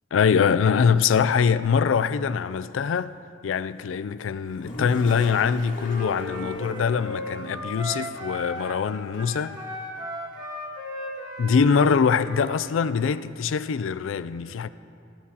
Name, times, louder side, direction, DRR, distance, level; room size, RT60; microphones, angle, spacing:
voice 1, 0.1-3.1 3.4-9.6 11.4-14.7, left 6 dB, 90° left, 0.4 m, -23 dB
Toilet flush, 4.3-7.4, left 1 dB, 45° left, 1.8 m, -40 dB
Wind instrument woodwind instrument, 5.7-8.8 9.1-12.5, left 1 dB, 20° right, 2.0 m, -36 dB
18.0 x 13.5 x 2.9 m
head